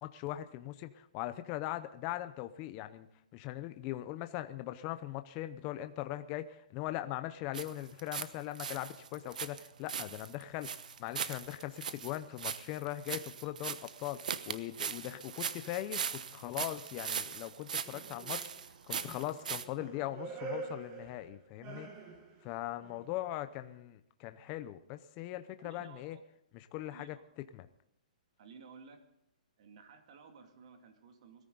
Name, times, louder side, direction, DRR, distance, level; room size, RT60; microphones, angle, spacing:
voice 1, 0.0-3.1 3.3-10.7 11.0-18.5 18.9-21.9 22.4-26.2 26.5-27.2 27.5-27.7, left 14 dB, 25° left, 10 dB, 0.6 m, -40 dB
sound 1, 7.5-8.3 8.5-19.6, right 7 dB, 70° right, 1.0 m, -40 dB
sound 2, 17.8-18.7 19.0-22.5 22.8-23.3, right 4 dB, 25° right, 1.7 m, -46 dB
voice 2, 25.6-26.2 26.9-27.2 28.4-29.0 29.6-31.4, right 5 dB, 45° right, 5 dB, 2.4 m, -55 dB
21.0 x 14.0 x 3.9 m, 0.79 s
hypercardioid pair, 165°, 4 cm